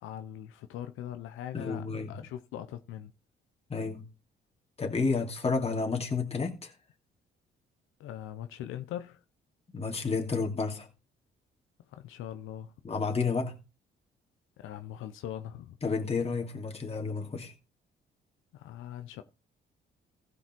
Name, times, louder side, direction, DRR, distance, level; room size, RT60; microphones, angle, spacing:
voice 1, 0.0-3.1 8.0-9.2 11.9-12.7 14.6-15.8 18.5-19.2, left 11 dB, 90° left, 0.8 m, -41 dB
voice 2, 1.5-2.3 3.7-4.0 4.8-6.7 9.7-10.9 12.8-13.5 15.8-17.5, left 4 dB, 30° left, 2.8 m, -31 dB
15.5 x 5.4 x 4.5 m
cardioid pair, 90°, 20 cm